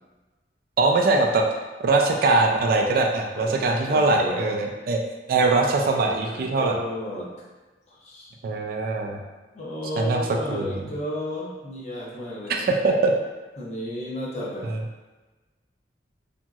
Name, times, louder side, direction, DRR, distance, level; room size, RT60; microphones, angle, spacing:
voice 1, 0.8-1.4 1.8-5.0 5.3-6.8 8.4-9.2 10.0-10.8 12.5-13.1 14.6-14.8, right 3 dB, 55° right, 2 dB, 0.3 m, -22 dB
voice 2, 3.4-4.6 5.9-7.3 7.9-8.3 9.5-12.7 13.6-14.7, left 1 dB, 40° left, -5 dB, 0.6 m, -33 dB
2.9 x 2.6 x 2.3 m, 1.2 s
head